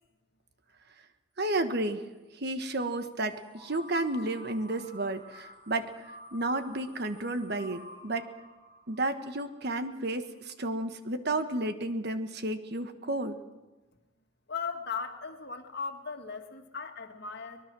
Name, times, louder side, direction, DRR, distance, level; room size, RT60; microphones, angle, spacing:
voice 1, 1.4-2.0 2.3-5.9 6.3-8.3 8.9-13.4, right 2 dB, 55° right, 9 dB, 1.3 m, -32 dB
sound 1, 3.3-10.1, equal, 20° right, 3.7 m, -51 dB
voice 2, 14.5-17.6, left 5 dB, 55° left, 4 dB, 2.0 m, -37 dB
23.5 x 20.0 x 6.2 m, 1.2 s
head